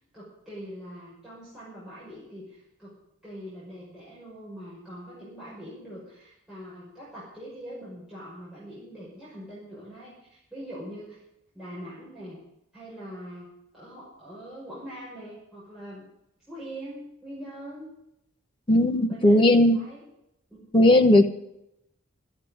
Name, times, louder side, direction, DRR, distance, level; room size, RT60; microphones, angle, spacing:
voice 1, 0.1-2.9 3.2-11.2 11.5-12.4 12.7-16.1 16.5-17.9 18.7-20.0 20.5-20.7, equal, 5° right, -10 dB, 6.1 m, -43 dB
voice 2, 18.7-19.8 20.7-21.3, left 1 dB, 25° left, 4 dB, 1.1 m, -17 dB
14.0 x 8.8 x 10.0 m, 0.82 s
head